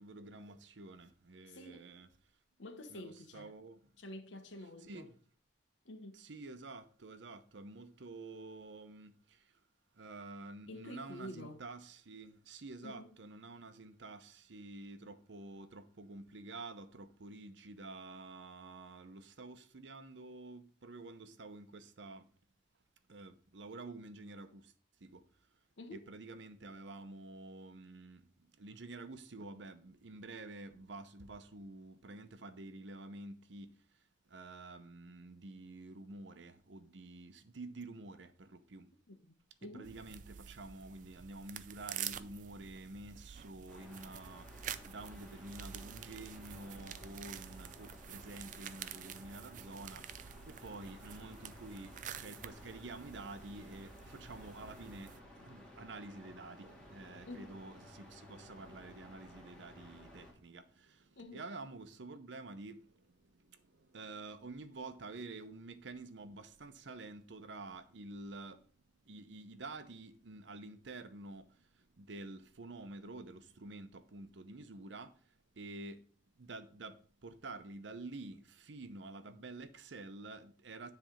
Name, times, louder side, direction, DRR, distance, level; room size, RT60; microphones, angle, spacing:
voice 1, 0.0-2.1 2.9-3.8 4.9-5.1 6.1-9.6 9.9-22.3 23.1-24.7 25.0-25.6 25.9-38.9 39.6-68.7 69.0-76.1 76.4-80.9, right 2 dB, 75° right, 0.7 m, -49 dB
voice 2, 1.4-1.9 2.6-3.5 4.0-5.1 5.8-6.2 10.7-11.6 12.8-13.1 25.8-26.1 39.1-39.2 39.6-39.9 57.3-57.5 61.2-61.4, left 1 dB, 80° left, 1.1 m, -48 dB
sound 1, 39.8-55.2, right 9 dB, 40° right, 0.4 m, -48 dB
sound 2, 43.7-60.3, left 1 dB, 5° left, 2.0 m, -55 dB
10.0 x 3.4 x 5.1 m
head